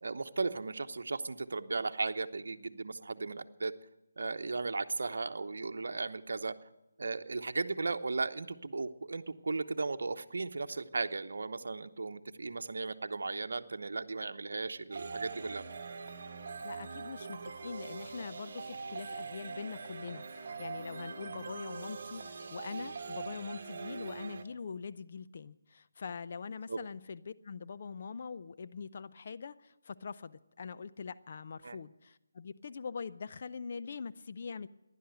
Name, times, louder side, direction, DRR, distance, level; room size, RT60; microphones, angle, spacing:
voice 1, 0.0-3.7 4.2-6.5 7.0-15.6 26.7-26.8 31.6-31.8, right 3 dB, 65° right, 7 dB, 0.9 m, -36 dB
sound 1, 14.9-24.4, right 4 dB, 50° right, 1.2 m, -43 dB
voice 2, 16.6-34.7, left 5 dB, 50° left, 13 dB, 0.5 m, -43 dB
15.5 x 11.0 x 7.9 m, 0.94 s
figure-of-eight pair, 155°, 0 cm